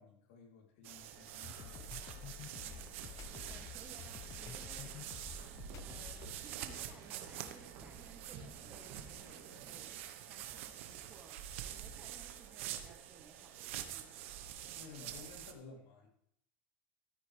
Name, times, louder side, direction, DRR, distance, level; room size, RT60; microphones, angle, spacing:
voice 1, 0.0-1.9 14.8-16.1, left 4 dB, 80° left, 1 dB, 3.0 m, -55 dB
sound 1, 0.8-15.5, right 11 dB, 85° right, 1.1 m, -47 dB
sound 2, 1.3-6.4, left 9 dB, 50° left, 0.7 m, -50 dB
sound 3, 1.4-10.0, right 5 dB, 65° right, 2.5 m, -56 dB
voice 2, 3.5-5.0 5.8-9.9 10.2-14.3, right 4 dB, 25° right, 3 dB, 2.2 m, -60 dB
13.5 x 8.7 x 3.3 m, 0.70 s
supercardioid pair, 110°, 7 cm